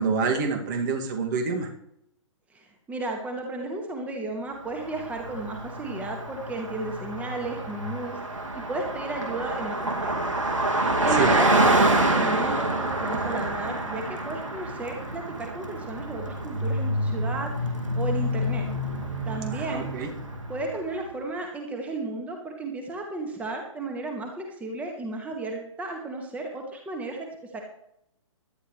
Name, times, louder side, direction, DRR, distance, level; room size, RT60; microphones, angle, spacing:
voice 1, 0.0-1.7 11.2-11.3 19.5-20.1, right 5 dB, 35° right, 3 dB, 2.2 m, -27 dB
voice 2, 2.5-8.2 8.5-10.3 11.0-17.5 17.9-18.6 19.3-19.9 20.5-27.3 27.5-27.6, right 2 dB, 10° right, 2 dB, 1.8 m, -34 dB
Car passing by, 4.8-20.8, right 1 dB, 80° right, 2.3 m, -27 dB
17.0 x 12.0 x 3.2 m, 0.76 s
figure-of-eight pair, 125°, 16 cm